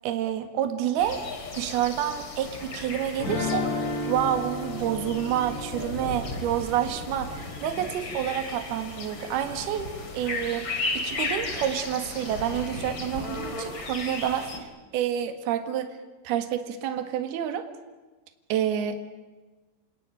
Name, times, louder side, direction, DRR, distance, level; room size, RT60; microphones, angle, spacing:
voice 1, 0.0-1.2 1.5-3.7 4.1-16.0 16.2-17.7 18.5-19.0, right 10 dB, 65° right, 8 dB, 3.4 m, -28 dB
sound 1, 1.0-14.6, left 3 dB, 30° left, 3.0 m, -35 dB
sound 2, 3.2-8.1, left 3 dB, 80° left, 7.4 m, -34 dB
28.5 x 18.5 x 9.1 m, 1.3 s
omnidirectional pair, 5.4 m